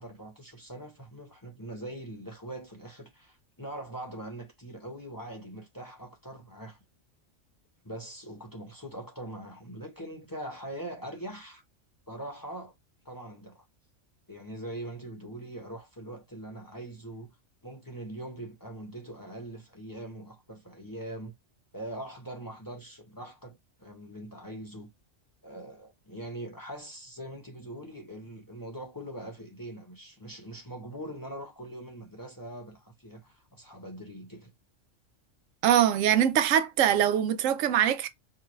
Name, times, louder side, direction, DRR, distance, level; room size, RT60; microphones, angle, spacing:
voice 1, 0.0-6.8 7.8-11.6 12.1-12.7 13.0-13.6 14.3-17.3 17.6-21.3 21.7-24.9 25.4-34.5, right 1 dB, 20° left, 0.7 m, -42 dB
voice 2, 35.6-38.1, right 10 dB, 85° right, 1.0 m, -23 dB
4.7 x 2.3 x 3.0 m
omnidirectional pair, 1.3 m